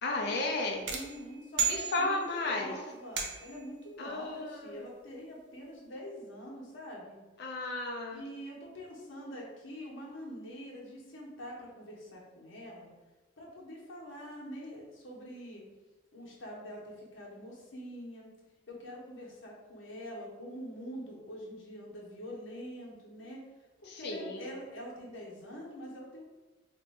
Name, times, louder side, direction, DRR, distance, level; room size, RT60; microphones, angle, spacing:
voice 1, 0.0-0.9 1.6-2.7 4.0-4.8 7.4-8.2 23.9-24.5, left 2 dB, 60° left, 1 dB, 0.5 m, -34 dB
voice 2, 0.9-7.2 8.1-12.9 13.4-15.6 16.1-18.3 18.7-23.4 23.8-26.2, equal, 85° left, -3 dB, 0.9 m, -45 dB
sound 1, 0.9-2.5 3.2-3.7, right 6 dB, 65° right, 0.5 m, -34 dB
2.6 x 2.2 x 4.0 m, 1.2 s
head